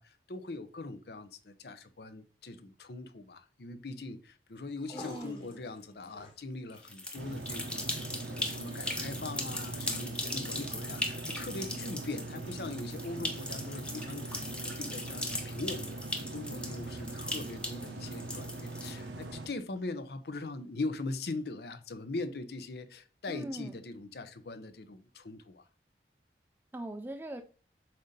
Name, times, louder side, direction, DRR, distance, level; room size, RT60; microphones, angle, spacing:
voice 1, 0.0-25.6, left 2 dB, 65° left, 0.7 m, -41 dB
sound 1, 4.5-21.0, left 3 dB, 30° left, 1.4 m, -57 dB
voice 2, 4.9-5.5 23.3-23.7 26.7-27.4, right 1 dB, 10° right, 0.4 m, -41 dB
sound 2, 6.8-19.2, left 1 dB, 5° left, 0.7 m, -39 dB
sound 3, 7.2-19.5, right 2 dB, 80° right, 0.9 m, -42 dB
7.6 x 2.8 x 5.1 m
head